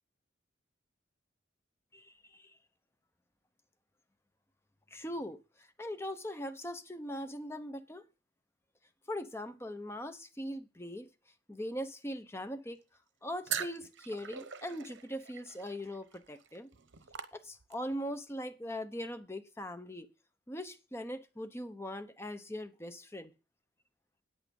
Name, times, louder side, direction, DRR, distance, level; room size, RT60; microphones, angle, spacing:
voice 1, 1.9-2.5 4.9-8.0 9.1-11.1 11.5-12.8 13.2-16.7 17.3-20.1 20.5-23.3, equal, 15° left, 0.9 m, -41 dB
sound 1, 13.5-17.9, right 8 dB, 80° right, 0.9 m, -42 dB
8.9 x 8.5 x 5.3 m
head